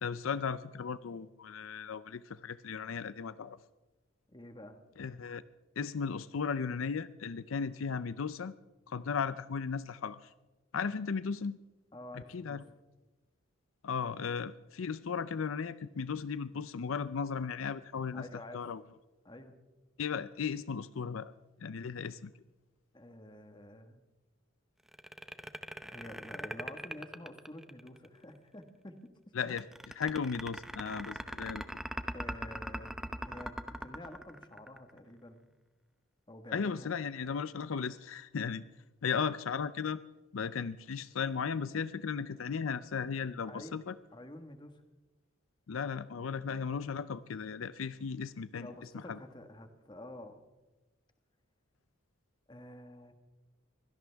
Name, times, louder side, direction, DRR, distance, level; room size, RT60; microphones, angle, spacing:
voice 1, 0.0-3.6 5.0-5.4 5.8-8.5 8.9-10.3 10.7-11.6 12.1-12.6 13.8-18.3 18.5-18.8 20.0-21.3 21.6-22.3 29.3-29.6 30.0-31.6 36.5-38.6 39.0-40.0 40.3-43.9 45.7-49.2, left 6 dB, 80° left, 15 dB, 0.5 m, -36 dB
voice 2, 4.3-4.8 11.9-12.6 18.1-18.6 19.2-19.6 22.9-24.0 25.8-29.0 29.5-29.6 32.1-32.9 33.3-35.5 36.3-36.9 43.5-43.8 44.1-44.8 48.6-50.4 52.5-53.1, left 1 dB, 25° left, 7 dB, 1.5 m, -49 dB
sound 1, 24.9-28.1 29.5-35.0, equal, ahead, 0.7 m, -40 dB
24.0 x 17.0 x 3.5 m, 1.1 s
head